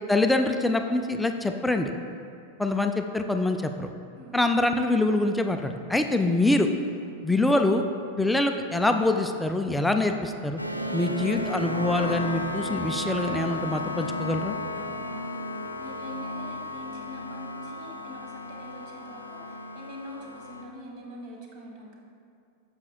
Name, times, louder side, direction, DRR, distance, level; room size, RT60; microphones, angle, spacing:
voice 1, 0.1-1.9 2.6-3.9 4.3-6.7 7.2-7.8 8.2-10.6 10.9-14.5, left 2 dB, 5° left, 5 dB, 0.4 m, -25 dB
voice 2, 4.1-4.5 6.9-7.1 14.7-15.4 15.8-22.0, left 1 dB, 45° right, -1 dB, 1.5 m, -44 dB
sound 1, 10.6-20.6, left 1 dB, 90° left, 0.5 m, -33 dB
9.5 x 7.1 x 2.3 m, 2.3 s
figure-of-eight pair, 90°, 0 cm